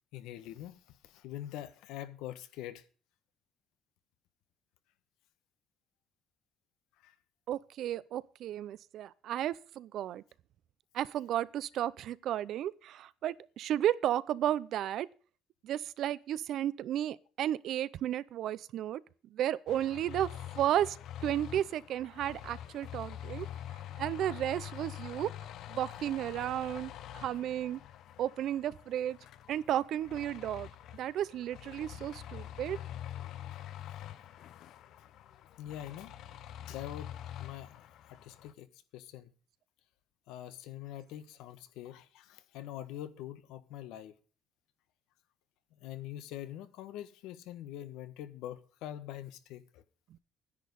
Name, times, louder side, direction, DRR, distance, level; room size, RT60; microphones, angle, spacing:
voice 1, 0.1-2.8 7.0-7.1 31.9-32.0 35.6-36.1 36.7-37.1 37.4-39.3 40.3-44.1 45.7-49.8, left 12 dB, 90° left, 1.3 m, -44 dB
voice 2, 7.5-10.2 10.9-15.1 15.6-19.0 19.3-21.0 21.2-23.5 24.0-25.3 25.7-27.8 28.2-29.2 29.5-30.7 30.9-32.8, right 11 dB, 55° right, 0.6 m, -33 dB
sound 1, 19.7-38.5, left 11 dB, 60° left, 0.8 m, -46 dB
10.5 x 10.5 x 5.3 m
cardioid pair, 160°, 0 cm